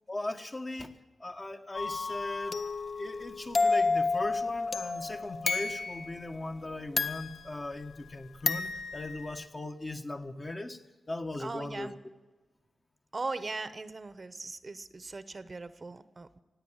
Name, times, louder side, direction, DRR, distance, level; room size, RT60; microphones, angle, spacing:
voice 1, 0.1-0.9 1.2-2.6 3.0-10.8 11.1-11.9, left 2 dB, 35° left, 5 dB, 1.3 m, -38 dB
sound 1, 1.7-6.2 7.0-8.1 8.5-9.5, left 4 dB, 65° left, 0.7 m, -31 dB
voice 2, 11.4-11.9 13.1-16.4, right 3 dB, 45° right, 13 dB, 0.8 m, -39 dB
16.5 x 8.9 x 8.8 m, 1.2 s
cardioid pair, 50°, 0 cm